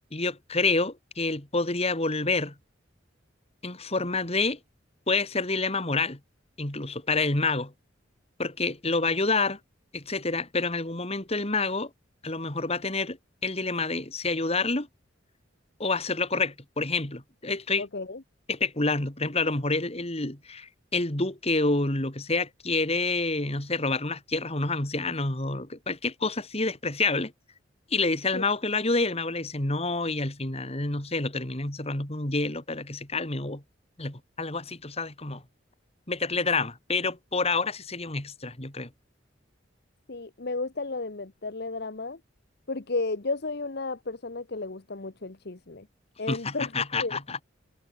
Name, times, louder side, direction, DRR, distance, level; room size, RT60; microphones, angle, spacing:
voice 1, 0.1-2.5 3.6-4.6 5.1-6.2 6.6-7.7 8.4-9.6 9.9-11.9 12.2-13.2 13.4-14.9 15.8-17.8 18.5-27.3 27.9-33.6 34.0-35.4 36.1-38.9 46.3-47.4, left 3 dB, 35° left, 3.2 m, -28 dB
voice 2, 17.8-18.2 28.3-28.5 40.1-42.2 42.7-45.9 46.2-46.7 47.0-47.2, left 3 dB, 60° left, 1.2 m, -33 dB
head